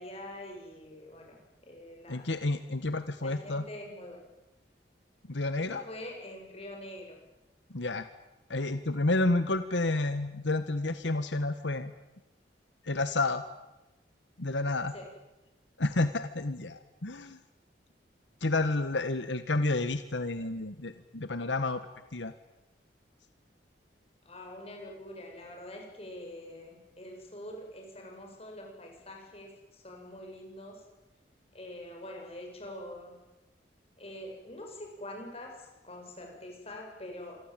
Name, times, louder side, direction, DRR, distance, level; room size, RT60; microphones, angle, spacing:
voice 1, 0.0-1.4 1.6-2.3 3.2-4.2 5.7-7.2 14.9-15.1 24.2-30.8 31.5-33.1 34.0-37.4, left 1 dB, 35° left, 1 dB, 7.6 m, -45 dB
voice 2, 2.1-3.6 5.3-5.8 7.7-8.1 8.5-11.9 12.8-13.4 14.4-14.9 15.8-17.4 18.4-21.8 22.1-22.3, left 2 dB, 90° left, 11 dB, 1.4 m, -30 dB
26.5 x 23.5 x 9.1 m, 1.0 s
head